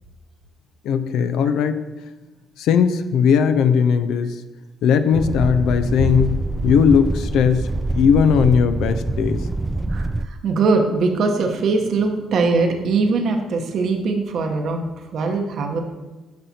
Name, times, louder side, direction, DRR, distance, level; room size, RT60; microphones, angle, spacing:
voice 1, 0.8-1.8 2.6-4.4 4.8-7.7 7.9-9.5, left 7 dB, 80° left, 9 dB, 0.4 m, -18 dB
sound 1, 5.1-10.3, right 2 dB, 20° right, 0.3 m, -25 dB
voice 2, 9.9-14.8 15.1-15.8, right 4 dB, 65° right, 3 dB, 0.9 m, -21 dB
10.5 x 5.7 x 2.8 m, 1.2 s
cardioid pair, 75°, 0 cm